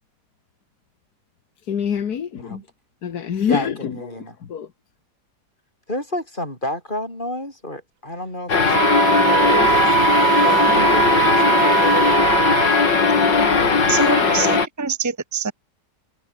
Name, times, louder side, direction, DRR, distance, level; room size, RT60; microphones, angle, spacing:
voice 1, 1.7-2.6 3.0-4.0 4.5-4.7, left 8 dB, 60° left, 1.8 m, -25 dB
voice 2, 3.5-4.4 5.9-8.8 9.7-11.6, left 1 dB, 25° left, 7.0 m, -31 dB
sound 1, 8.5-14.7, left 4 dB, 80° left, 3.7 m, -18 dB
Wind instrument woodwind instrument, 8.7-12.9, right 12 dB, 70° right, 1.4 m, -20 dB
voice 3, 13.9-15.5, right 6 dB, 10° right, 1.3 m, -25 dB
omnidirectional pair, 1.9 m